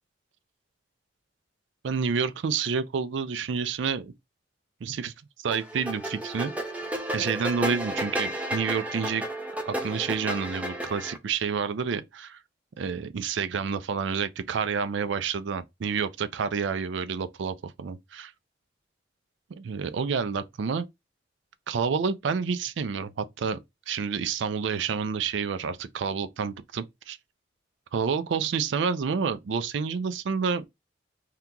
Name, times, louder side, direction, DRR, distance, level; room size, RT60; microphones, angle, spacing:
voice 1, 1.8-4.1 4.8-5.1 5.4-6.5 7.1-9.2 9.7-12.4 12.8-18.3 19.5-20.9 21.7-23.6 23.9-27.2 27.9-30.6, right 6 dB, 70° right, 0.4 m, -29 dB
sound 1, 5.5-11.2, right 1 dB, 5° right, 0.4 m, -32 dB
2.8 x 2.2 x 3.6 m
head